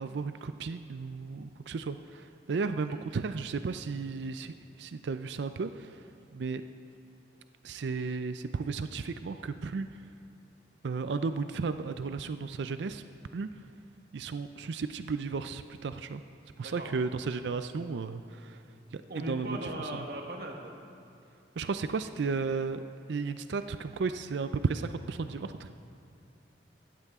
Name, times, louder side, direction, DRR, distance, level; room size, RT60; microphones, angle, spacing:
voice 1, 0.0-6.6 7.6-10.0 10.8-13.0 13.3-13.5 14.1-16.2 16.6-18.6 18.9-20.0 21.6-22.8 23.1-25.7, right 4 dB, 80° right, 10 dB, 0.4 m, -34 dB
voice 2, 16.6-17.0 19.1-20.7, right 1 dB, 60° right, 1 dB, 1.4 m, -38 dB
14.5 x 14.5 x 3.6 m, 2.6 s
head